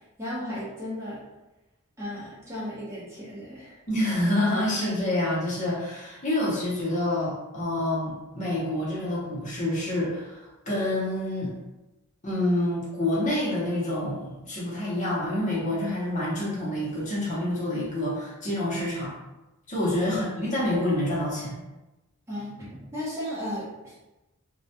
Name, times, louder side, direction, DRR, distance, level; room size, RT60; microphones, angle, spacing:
voice 1, 0.2-1.2 2.0-3.8 20.0-20.2 22.3-23.9, equal, 15° right, -8 dB, 0.7 m, -35 dB
voice 2, 3.9-11.5 12.2-19.1 19.7-21.6, left 1 dB, 35° left, -6 dB, 0.7 m, -27 dB
2.2 x 2.1 x 2.7 m, 1.0 s
head